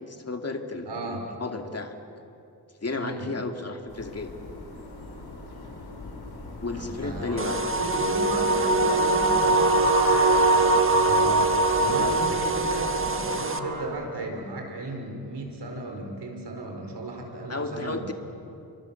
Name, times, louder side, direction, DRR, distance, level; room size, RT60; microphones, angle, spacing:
voice 1, 0.0-1.9 2.8-4.3 6.6-7.6 17.5-18.1, left 3 dB, 40° left, 4 dB, 2.5 m, -33 dB
voice 2, 0.9-1.2 3.0-3.3 6.7-18.1, right 2 dB, 90° right, 2 dB, 4.6 m, -35 dB
sound 1, 3.9-13.1, left 2 dB, 75° left, 5.7 m, -41 dB
sound 2, 7.3-13.8, right 2 dB, 55° right, 6.6 m, -36 dB
sound 3, 7.4-13.6, right 2 dB, 30° right, 1.4 m, -22 dB
30.0 x 24.5 x 7.2 m, 2.7 s
wide cardioid pair, 95°, 39 cm